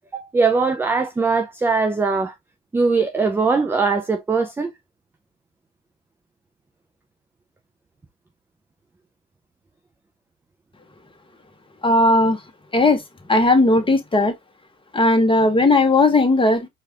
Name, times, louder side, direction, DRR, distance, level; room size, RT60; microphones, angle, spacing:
voice 1, 0.1-2.3 2.7-4.7, right 4 dB, 5° right, 0.3 m, -20 dB
voice 2, 11.8-12.4 12.7-13.0 13.3-14.3 14.9-16.7, left 2 dB, 15° left, 1.2 m, -16 dB
4.5 x 2.5 x 2.8 m
hypercardioid pair, 75°, 37 cm